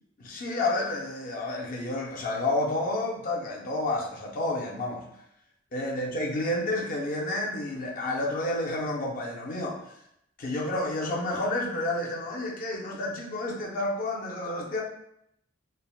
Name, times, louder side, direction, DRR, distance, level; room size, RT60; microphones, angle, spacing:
voice 1, 0.2-5.1 5.7-10.0 10.4-14.8, left 2 dB, 45° left, -2 dB, 0.4 m, -30 dB
3.2 x 2.0 x 2.3 m, 0.76 s
head